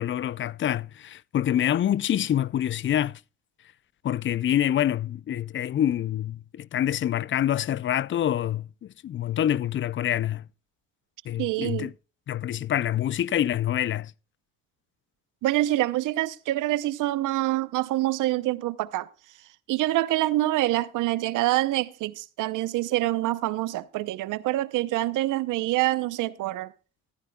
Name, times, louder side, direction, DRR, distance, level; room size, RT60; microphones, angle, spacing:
voice 1, 0.0-3.2 4.0-10.4 11.3-11.9 12.3-14.1, left 11 dB, 40° left, 0.4 m, -26 dB
voice 2, 11.4-11.9 15.4-19.1 19.7-26.7, right 16 dB, 85° right, 0.7 m, -26 dB
15.0 x 13.5 x 2.3 m
cardioid pair, 90°, 30 cm